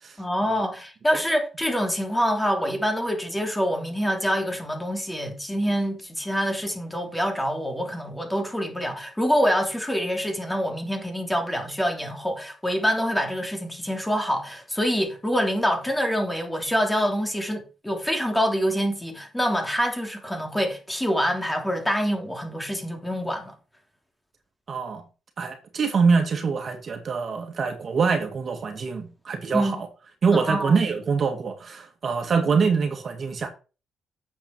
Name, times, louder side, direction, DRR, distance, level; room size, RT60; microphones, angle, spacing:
voice 1, 0.2-23.5 29.5-29.8 30.3-30.8, equal, 10° left, 3.1 m, -26 dB
voice 2, 24.7-25.0 25.4-29.9 30.2-33.5, right 5 dB, 50° right, 2.1 m, -24 dB
9.1 x 7.6 x 4.5 m
cardioid pair, 90°, 0 cm